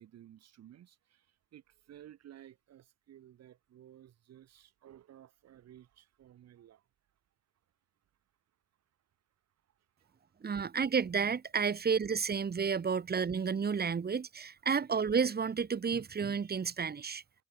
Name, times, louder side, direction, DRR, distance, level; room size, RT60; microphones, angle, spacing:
voice 1, 0.0-6.9 9.7-10.4 11.7-11.8, right 11 dB, 60° right, 7.0 m, -56 dB
voice 2, 10.4-17.2, right 6 dB, 35° right, 1.8 m, -31 dB
supercardioid pair, 65°, 29 cm